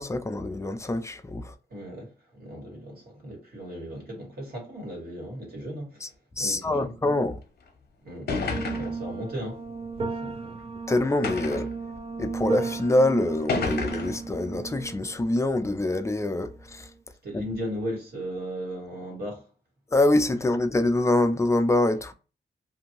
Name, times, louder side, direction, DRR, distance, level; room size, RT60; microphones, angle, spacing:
voice 1, 0.0-1.5 6.0-6.1 6.4-7.4 10.9-11.7 12.2-16.9 17.3-17.4 19.9-22.1, left 2 dB, 15° left, 0.4 m, -25 dB
voice 2, 1.7-7.0 8.0-8.3 8.7-9.6 10.1-10.6 17.2-19.5, equal, 60° right, 1.5 m, -37 dB
sound 1, 7.7-7.8 8.3-9.1 10.0-10.1 11.2-11.8 12.7-12.8 13.5-14.2, left 4 dB, 60° left, 0.7 m, -30 dB
sound 2, 8.5-16.9, right 4 dB, 35° right, 0.5 m, -35 dB
2.7 x 2.6 x 2.9 m
wide cardioid pair, 105°, 18 cm